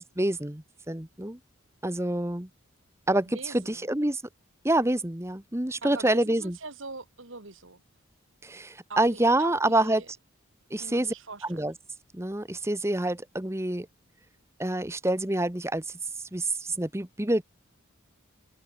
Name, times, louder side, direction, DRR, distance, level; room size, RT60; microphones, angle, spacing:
voice 1, 0.2-1.4 1.8-2.5 3.1-4.2 4.6-6.6 8.4-10.0 10.7-11.1 11.5-11.7 12.1-13.9 14.6-15.8 16.3-17.4, right 1 dB, 10° right, 1.2 m, -27 dB
voice 2, 3.3-3.9 5.8-7.8 8.9-10.1 10.8-11.6, right 3 dB, 60° right, 2.5 m, -42 dB
head